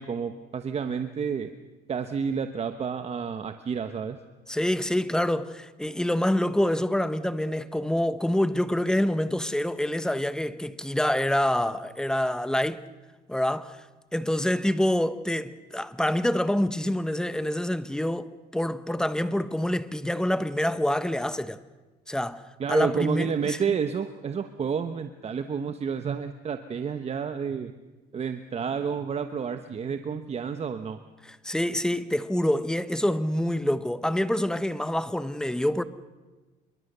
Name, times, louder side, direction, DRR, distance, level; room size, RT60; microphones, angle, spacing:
voice 1, 0.0-1.5 1.9-4.2 22.6-27.7 28.1-31.0, right 6 dB, 40° right, 1.2 m, -30 dB
voice 2, 4.5-12.8 13.3-13.8 14.1-21.6 22.1-22.4 22.7-23.6 31.2-35.8, left 1 dB, 5° left, 1.2 m, -26 dB
27.0 x 23.0 x 6.9 m
cardioid pair, 110°, 17 cm